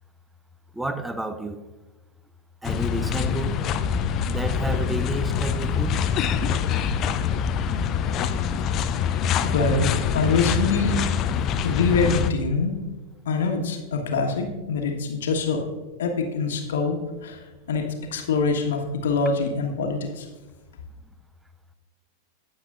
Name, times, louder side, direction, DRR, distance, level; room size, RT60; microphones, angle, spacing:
voice 1, 0.8-1.6 2.6-3.6 4.3-6.0, right 2 dB, 5° right, 0.6 m, -30 dB
sound 1, 2.6-12.3, left 7 dB, 35° left, 0.5 m, -25 dB
voice 2, 9.5-11.0 11.6-12.7 13.2-15.6 16.0-17.0 17.2-17.4 17.7-17.8 18.1-20.2, left 4 dB, 60° left, 1.4 m, -24 dB
16.5 x 7.1 x 2.5 m
figure-of-eight pair, 90°, 0 cm